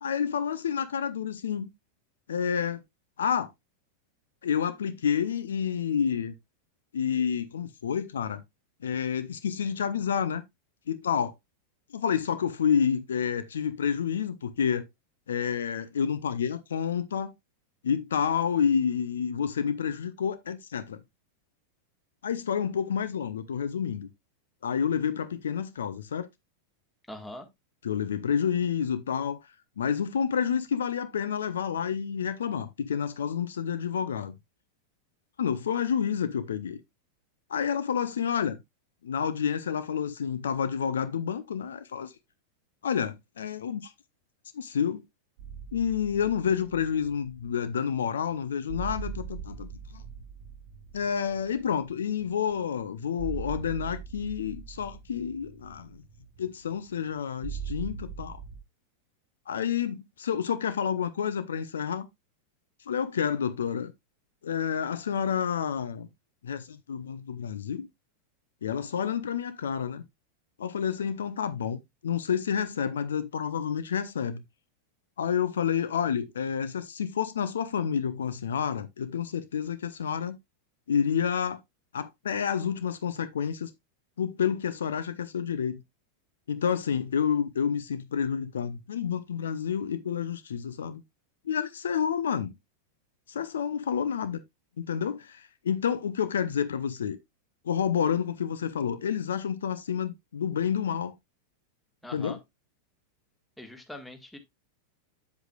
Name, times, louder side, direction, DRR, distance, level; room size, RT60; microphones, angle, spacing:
voice 1, 0.0-1.7 2.3-2.8 3.2-3.5 4.4-6.3 6.9-8.4 8.8-10.4 10.9-11.3 11.9-14.8 15.3-17.3 17.8-21.0 22.2-24.1 24.6-26.3 27.8-29.4 29.8-34.4 35.4-36.8 37.5-38.6 39.0-42.1 42.8-43.9 44.5-45.0 45.7-49.7 49.9-50.0 50.9-56.0 56.4-58.4 59.5-62.1 62.9-63.9 64.4-66.1 66.4-67.9 68.6-70.0 70.6-74.4 75.2-80.4 80.9-81.6 81.9-83.7 84.2-85.8 86.5-91.0 91.5-92.5 93.3-94.4 94.8-97.2 97.6-101.1 102.1-102.4, left 7 dB, 65° left, 0.6 m, -29 dB
voice 2, 27.1-27.5 102.0-102.4 103.6-104.4, left 1 dB, 5° left, 1.7 m, -42 dB
sound 1, 45.4-58.6, right 6 dB, 50° right, 1.1 m, -42 dB
8.3 x 7.9 x 2.4 m
figure-of-eight pair, 90°, 0 cm